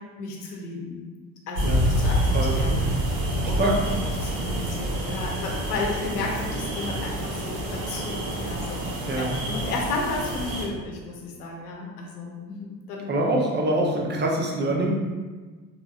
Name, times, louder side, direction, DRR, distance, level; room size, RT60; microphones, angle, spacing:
voice 1, 0.2-1.0 1.5-2.9 3.4-13.2, left 3 dB, 75° left, -1 dB, 0.8 m, -33 dB
sound 1, 1.6-10.7, right 1 dB, 60° right, 1.0 m, -27 dB
voice 2, 9.1-9.4 13.1-15.0, right 1 dB, 25° right, -1 dB, 0.7 m, -24 dB
3.8 x 2.9 x 2.4 m, 1.4 s
figure-of-eight pair, 60°, 47 cm